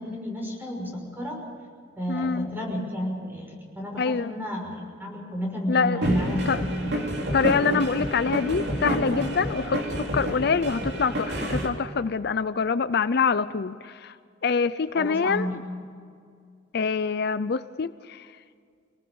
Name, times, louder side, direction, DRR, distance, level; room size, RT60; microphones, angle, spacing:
voice 1, 0.0-1.4 2.0-7.0 14.9-15.6, left 1 dB, 10° right, 0 dB, 5.9 m, -32 dB
voice 2, 2.1-2.5 4.0-4.3 5.7-6.0 6.5-6.6 7.3-9.8 10.1-14.1 14.4-15.5 16.7-18.3, left 5 dB, 55° left, 14 dB, 0.5 m, -25 dB
sound 1, 6.0-11.7, equal, 60° right, 3.3 m, -28 dB
26.0 x 18.5 x 6.9 m, 2.2 s
head